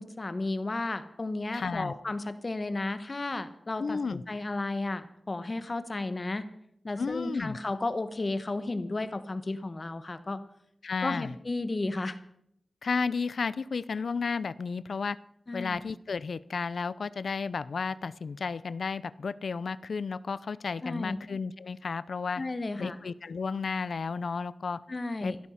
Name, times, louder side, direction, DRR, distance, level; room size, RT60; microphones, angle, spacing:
voice 1, 0.0-6.5 6.8-10.4 11.0-12.2 15.5-15.8 20.8-21.2 22.4-23.0 24.9-25.4, left 2 dB, 40° left, 12 dB, 1.1 m, -33 dB
voice 2, 1.5-1.9 3.8-4.2 7.0-7.6 10.8-11.3 12.8-15.2 15.5-22.4 22.8-24.8 25.2-25.3, left 5 dB, 80° left, 18 dB, 0.5 m, -33 dB
16.0 x 12.5 x 5.7 m, 0.73 s
wide cardioid pair, 100°, 0 cm